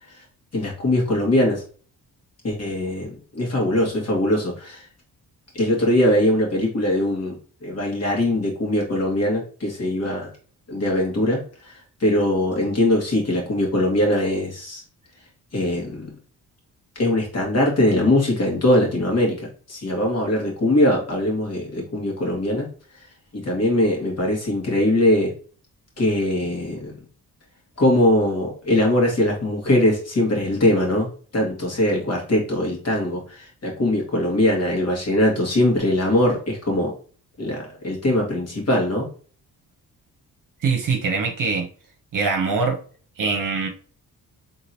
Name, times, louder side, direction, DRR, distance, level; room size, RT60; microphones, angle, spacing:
voice 1, 0.5-1.6 2.4-4.9 5.5-10.3 10.7-14.8 15.5-16.1 17.0-22.7 23.3-25.3 26.0-26.9 27.8-31.1 31.3-36.9 37.4-39.1, left 1 dB, 45° left, -1 dB, 2.2 m, -21 dB
voice 2, 40.6-41.7 42.1-42.8 43.2-43.7, right 4 dB, 60° right, 3 dB, 1.0 m, -23 dB
3.8 x 3.7 x 2.9 m, 0.41 s
cardioid pair, 105°, 37 cm